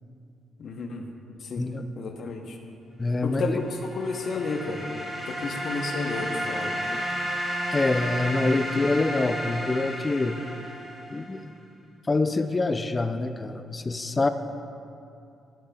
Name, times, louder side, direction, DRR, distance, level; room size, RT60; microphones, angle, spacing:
voice 1, 0.6-1.1 1.4-1.6 2.0-2.6 3.2-3.7 3.9-4.8 5.2-6.7, left 4 dB, 60° left, 4 dB, 0.7 m, -32 dB
voice 2, 3.0-3.6 7.7-10.4 11.1-11.5 12.1-14.3, left 2 dB, 25° left, 10 dB, 0.3 m, -25 dB
sound 1, 3.6-11.3, equal, 15° right, 1.9 m, -32 dB
12.0 x 6.6 x 2.3 m, 2.6 s
cardioid pair, 90°, 0 cm